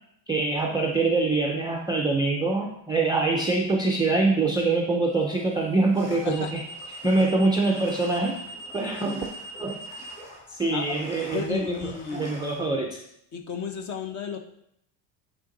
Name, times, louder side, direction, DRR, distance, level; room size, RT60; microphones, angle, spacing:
voice 1, 0.3-6.6 7.0-8.4 8.7-9.2 9.6-9.8 10.5-11.8 12.1-13.0, right 3 dB, 10° right, -1 dB, 0.3 m, -24 dB
sound 1, 1.7-2.1 5.0-10.1, equal, 55° left, 2.8 m, -42 dB
sound 2, 5.9-12.7, left 1 dB, 15° left, 2.5 m, -47 dB
voice 2, 11.3-12.3 13.3-14.4, left 6 dB, 35° left, 5 dB, 0.9 m, -33 dB
9.2 x 3.8 x 3.9 m, 0.74 s
cardioid pair, 145°, 49 cm